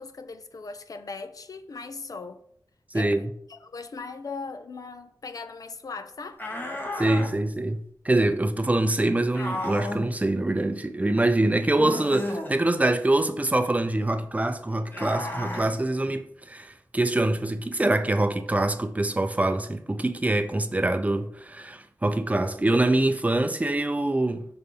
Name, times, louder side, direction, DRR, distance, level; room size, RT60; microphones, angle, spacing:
voice 1, 0.0-2.4 2.9-3.1 3.5-6.4, left 4 dB, 60° left, 0.6 m, -39 dB
voice 2, 2.9-3.3 7.0-24.4, right 2 dB, 20° right, 0.6 m, -24 dB
sound 1, 6.4-7.3 9.3-10.1 11.7-12.5 14.9-15.7, left 1 dB, 30° left, 1.2 m, -32 dB
6.7 x 4.0 x 5.4 m
wide cardioid pair, 100°, 7 cm